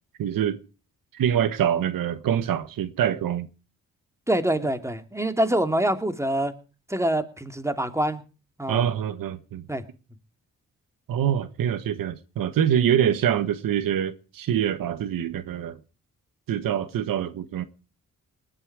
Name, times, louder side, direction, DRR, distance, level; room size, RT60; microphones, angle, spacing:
voice 1, 0.2-0.6 1.1-3.5 8.7-9.7 11.1-15.8 16.5-17.6, right 9 dB, 85° right, 1.4 m, -25 dB
voice 2, 4.3-6.5 6.9-8.2 8.6-8.8 9.7-9.8, right 1 dB, 10° right, 2.8 m, -25 dB
20.0 x 12.0 x 4.8 m
cardioid pair, 60°, 33 cm